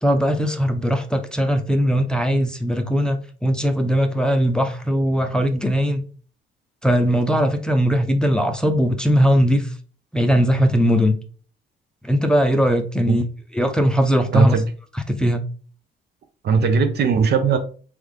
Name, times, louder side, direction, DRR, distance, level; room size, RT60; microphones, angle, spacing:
voice 1, 0.0-6.0 6.8-9.7 10.1-11.1 12.0-13.2 13.5-14.6 15.1-15.4, equal, 5° left, 0.6 m, -19 dB
voice 2, 14.3-14.6 16.4-17.6, right 5 dB, 55° right, 0.6 m, -18 dB
3.4 x 3.2 x 3.5 m
cardioid pair, 90°, 20 cm